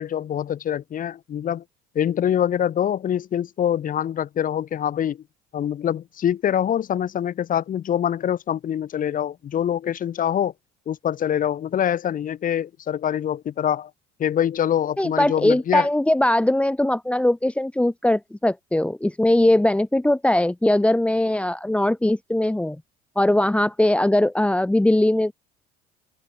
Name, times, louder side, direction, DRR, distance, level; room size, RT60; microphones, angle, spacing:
voice 1, 0.0-1.6 1.9-5.2 5.5-10.5 10.9-13.9 14.2-15.9, left 10 dB, 45° left, 2.4 m, -24 dB
voice 2, 15.0-22.8 23.1-25.3, left 1 dB, 5° left, 1.6 m, -20 dB
open air
supercardioid pair, 100°, 20 cm